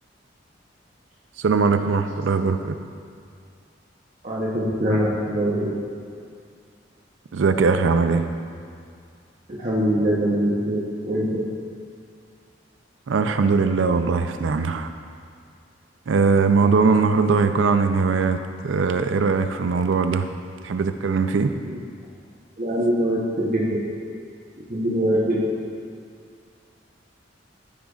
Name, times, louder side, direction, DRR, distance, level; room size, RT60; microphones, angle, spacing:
voice 1, 1.4-2.8 7.3-8.3 13.1-14.9 16.1-20.3 20.6-21.5, right 4 dB, 85° right, 8 dB, 0.4 m, -20 dB
voice 2, 4.2-5.7 9.5-11.2 22.6-23.8 24.7-25.5, equal, 45° right, -6 dB, 0.9 m, -23 dB
13.0 x 5.0 x 2.4 m, 2.3 s
head